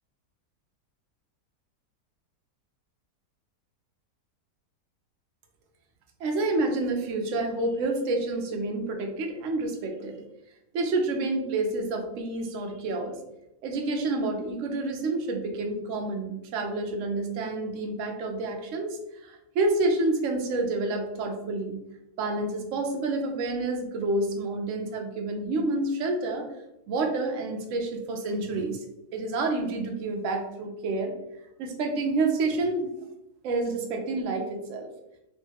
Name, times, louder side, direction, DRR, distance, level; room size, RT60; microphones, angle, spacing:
voice 1, 6.2-10.2 10.7-13.2 13.6-21.8 22.2-26.5 26.9-28.8 29.1-31.1 31.6-32.9 33.4-34.9, right 2 dB, 65° right, 3 dB, 0.8 m, -28 dB
3.0 x 2.2 x 3.2 m, 0.86 s
omnidirectional pair, 1.7 m